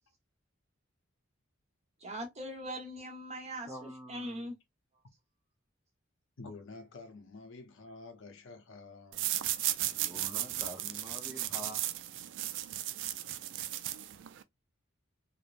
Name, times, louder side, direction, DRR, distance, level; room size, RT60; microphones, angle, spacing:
voice 1, 2.0-4.5, equal, 35° right, 1.0 m, -41 dB
voice 2, 3.7-4.5 9.9-11.8, equal, 10° right, 0.5 m, -46 dB
voice 3, 6.4-9.4, left 3 dB, 65° left, 0.7 m, -49 dB
sound 1, 9.1-14.4, right 13 dB, 60° right, 0.3 m, -35 dB
3.2 x 2.0 x 2.5 m
head